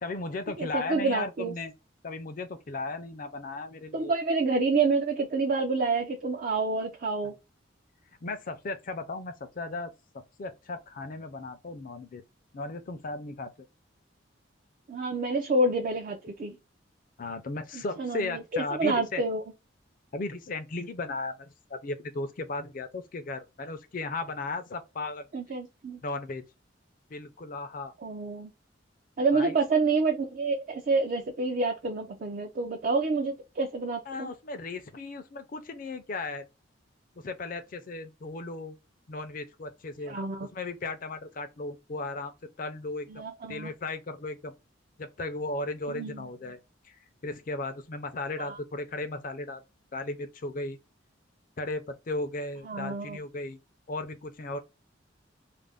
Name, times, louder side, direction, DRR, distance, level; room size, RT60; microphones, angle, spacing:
voice 1, 0.0-1.7 2.0-4.1 8.2-9.9 10.4-12.2 12.5-13.5 17.2-19.2 20.1-25.2 26.0-26.4 27.1-27.9 29.3-29.5 34.1-36.5 37.2-38.8 39.1-43.2 43.5-44.5 45.0-46.6 46.8-47.0 47.2-49.6 49.9-50.8 51.6-53.6 53.9-54.6, left 2 dB, 45° left, 0.5 m, -36 dB
voice 2, 0.6-1.5 3.9-7.3 14.9-16.6 17.7-19.4 25.3-26.0 28.0-28.5 29.2-34.3 40.1-40.5 43.1-43.7 45.9-46.3 48.4-48.6 52.6-53.2, right 3 dB, 45° right, 0.4 m, -28 dB
2.5 x 2.0 x 3.4 m
head